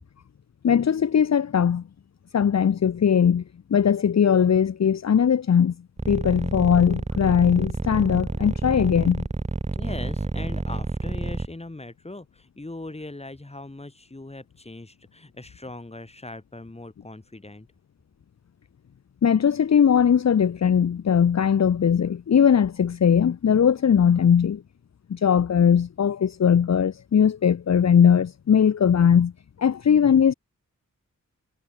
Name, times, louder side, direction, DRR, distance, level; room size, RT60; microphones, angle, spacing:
voice 1, 0.6-1.8 2.3-3.4 3.7-5.7 6.1-9.2 19.2-24.6 25.1-29.3 29.6-30.3, left 8 dB, 60° left, 0.9 m, -19 dB
sound 1, 6.0-11.5, right 3 dB, 20° right, 1.4 m, -28 dB
voice 2, 9.7-17.7, left 2 dB, 20° left, 6.5 m, -39 dB
wide cardioid pair, 100°, 31 cm